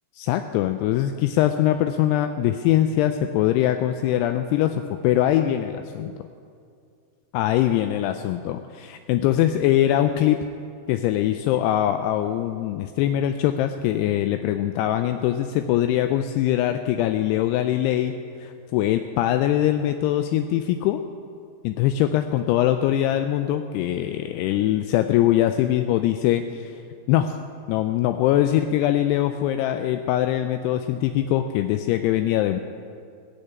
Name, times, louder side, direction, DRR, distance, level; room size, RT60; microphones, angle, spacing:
voice 1, 0.2-6.1 7.3-10.4 10.9-18.1 18.4-21.0 21.6-26.8 27.1-27.3 27.7-32.6, left 12 dB, 85° left, 7 dB, 2.4 m, -22 dB
19.0 x 6.7 x 8.6 m, 2.3 s
omnidirectional pair, 5.1 m